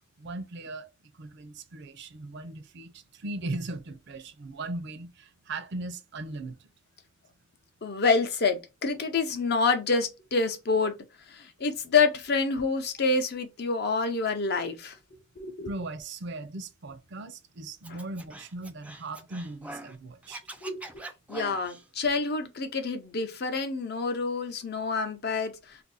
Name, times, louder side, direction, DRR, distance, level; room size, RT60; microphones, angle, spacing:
voice 1, 0.2-0.9 1.1-6.7 15.6-20.4, right 2 dB, 60° right, 0.5 m, -38 dB
voice 2, 7.8-10.9 11.3-14.9 15.4-15.7 20.6-20.8 21.3-25.8, left 4 dB, 55° left, 0.7 m, -27 dB
Scratching (performance technique), 17.8-19.9 20.2-21.8, right 1 dB, 5° right, 0.3 m, -43 dB
2.6 x 2.5 x 4.0 m
head